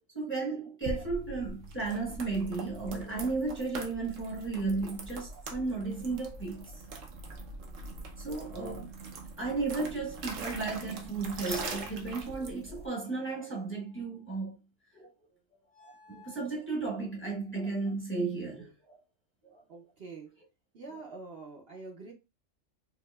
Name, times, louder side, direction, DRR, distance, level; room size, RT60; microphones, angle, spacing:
voice 1, 0.1-7.0 8.2-8.9 9.4-14.6 14.9-15.1 16.1-19.0 19.4-19.6, right 3 dB, 10° left, 1.0 m, -34 dB
sound 1, 0.8-12.9, right 3 dB, 75° right, 1.1 m, -42 dB
sound 2, 11.4-11.9 13.1-14.3 15.7-16.5, left 3 dB, 85° left, 1.5 m, -54 dB
voice 2, 19.7-20.4 20.7-22.1, right 3 dB, 55° right, 0.9 m, -45 dB
4.7 x 2.8 x 2.3 m
omnidirectional pair, 1.4 m